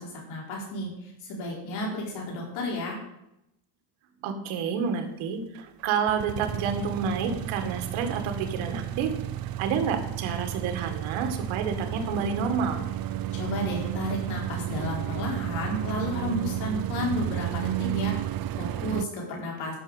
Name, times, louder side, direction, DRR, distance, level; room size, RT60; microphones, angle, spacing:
voice 1, 0.0-3.0 13.3-19.8, left 1 dB, 75° left, -2 dB, 4.5 m, -32 dB
voice 2, 4.2-9.1 9.6-12.8, right 6 dB, 90° right, 6 dB, 2.1 m, -29 dB
sound 1, 5.5-19.0, right 12 dB, 50° right, 0.6 m, -32 dB
12.0 x 6.4 x 7.9 m, 0.84 s
cardioid pair, 120°, 47 cm